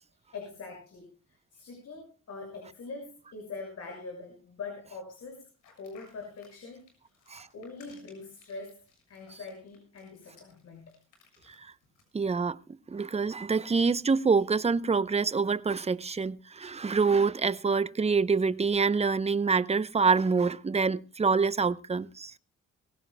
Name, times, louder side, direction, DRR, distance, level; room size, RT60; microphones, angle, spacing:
voice 1, 0.3-5.5 5.8-6.8 7.5-10.9, left 4 dB, 60° left, 6.2 m, -43 dB
sound 1, 5.6-12.1, left 5 dB, 80° left, 7.5 m, -61 dB
voice 2, 12.1-12.6 12.9-22.3, right 5 dB, 20° right, 0.7 m, -26 dB
23.5 x 16.0 x 2.2 m
cardioid pair, 90°, 30 cm